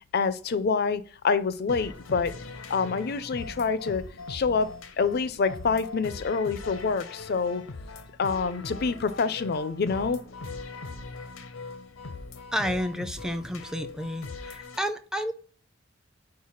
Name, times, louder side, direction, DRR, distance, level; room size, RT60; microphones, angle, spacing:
voice 1, 0.1-2.3 2.7-7.6 8.2-10.2, left 5 dB, 50° left, 0.5 m, -27 dB
sound 1, 1.7-14.8, left 3 dB, 85° left, 0.7 m, -41 dB
voice 2, 12.5-15.3, equal, 5° right, 0.5 m, -31 dB
4.7 x 4.4 x 5.7 m
head